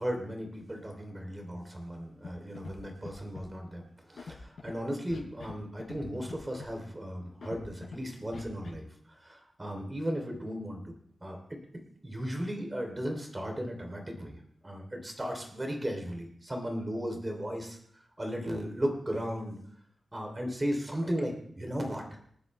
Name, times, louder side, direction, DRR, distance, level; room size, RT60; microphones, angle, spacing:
voice 1, 0.0-8.9 9.2-10.9 11.2-11.6 12.0-14.4 14.6-17.8 18.2-19.6 20.1-22.0, equal, 15° right, 3 dB, 3.0 m, -36 dB
Scratching (performance technique), 2.2-2.3 2.6-2.8 3.0-3.5 4.2-4.7 5.1-5.5 5.8-6.0 6.3-6.7 7.4-8.0 8.3-8.7, left 5 dB, 60° left, 5.3 m, -44 dB
27.0 x 9.4 x 3.2 m, 0.64 s
wide cardioid pair, 155°, 0 cm